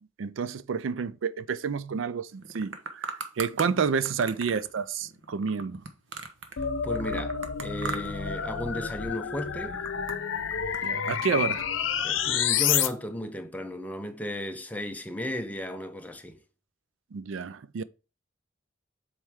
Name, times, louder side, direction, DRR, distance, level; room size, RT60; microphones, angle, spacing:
voice 1, 0.0-5.8 10.8-11.7 17.1-17.8, right 6 dB, 85° right, 0.4 m, -30 dB
sound 1, 2.4-3.7 4.0-6.6 6.9-8.3 8.5-9.0 9.4-11.2, right 4 dB, 70° right, 1.0 m, -38 dB
sound 2, 6.6-12.9, left 8 dB, 85° left, 0.7 m, -29 dB
voice 2, 6.8-9.8 12.0-16.4, left 1 dB, 10° left, 0.7 m, -35 dB
7.8 x 4.4 x 3.6 m
head